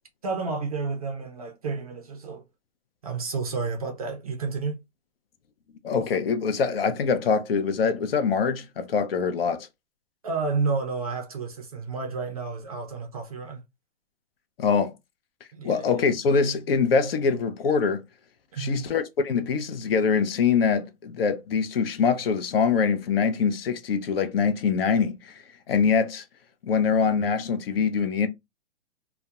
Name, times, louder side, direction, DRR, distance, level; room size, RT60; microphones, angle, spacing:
voice 1, 0.2-2.4 3.0-4.8 10.2-13.6 15.5-16.0 18.5-18.9, right 4 dB, 35° right, 0.4 m, -31 dB
voice 2, 5.8-9.7 14.6-14.9 15.6-18.0 18.6-26.2 26.6-28.3, left 5 dB, 55° left, 0.5 m, -24 dB
2.2 x 2.1 x 2.7 m
hypercardioid pair, 160°, 35 cm